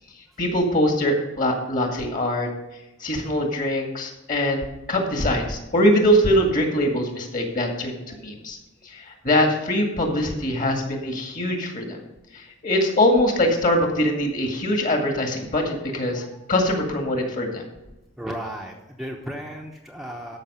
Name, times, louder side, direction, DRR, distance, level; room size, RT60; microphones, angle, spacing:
voice 1, 0.4-2.5 3.0-8.6 8.8-12.0 12.3-17.6, left 1 dB, 40° left, 2 dB, 2.1 m, -23 dB
voice 2, 18.2-20.4, equal, ahead, -1 dB, 0.8 m, -35 dB
13.5 x 5.7 x 5.6 m, 0.98 s
head